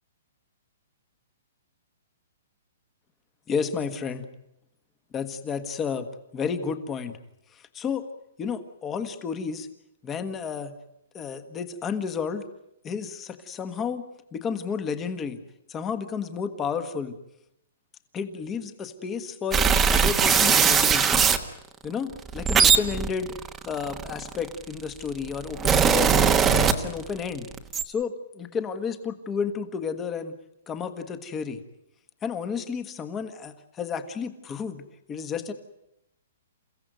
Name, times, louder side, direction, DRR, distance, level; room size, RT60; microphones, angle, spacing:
voice 1, 3.5-4.3 5.1-6.1 6.3-7.2 7.5-8.1 8.4-9.7 10.0-10.8 11.1-12.4 12.8-14.0 14.3-15.4 15.7-17.1 18.1-21.3 21.8-23.3 23.6-26.2 26.5-27.5 27.8-30.3 30.7-31.6 32.2-35.5, left 6 dB, 15° left, 10 dB, 1.5 m, -31 dB
sound 1, 19.5-21.4 22.2-24.5 25.2-27.2 27.5-27.8, right 6 dB, 10° right, 1.2 m, -20 dB
29.0 x 16.0 x 9.2 m, 0.83 s
hypercardioid pair, 170°, 0 cm